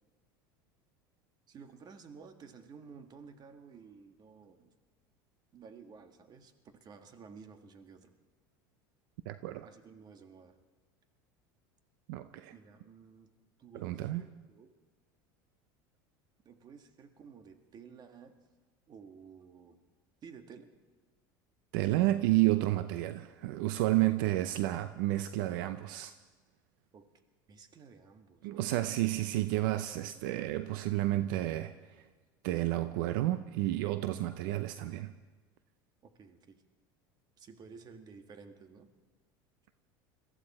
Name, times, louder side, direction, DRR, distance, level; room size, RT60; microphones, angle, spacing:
voice 1, 1.5-4.7 5.5-8.1 9.6-10.5 12.5-13.3 13.6-14.7 16.4-18.4 18.9-19.8 20.2-20.7 26.9-27.1 27.5-28.9 36.0-36.6 37.4-38.9, right 5 dB, 40° right, 1.7 m, -53 dB
voice 2, 9.3-9.7 12.1-12.5 13.7-14.3 21.7-26.1 28.4-31.7 32.4-35.1, right 16 dB, 75° right, 0.6 m, -31 dB
22.5 x 14.5 x 4.3 m
supercardioid pair, 100°, 11 cm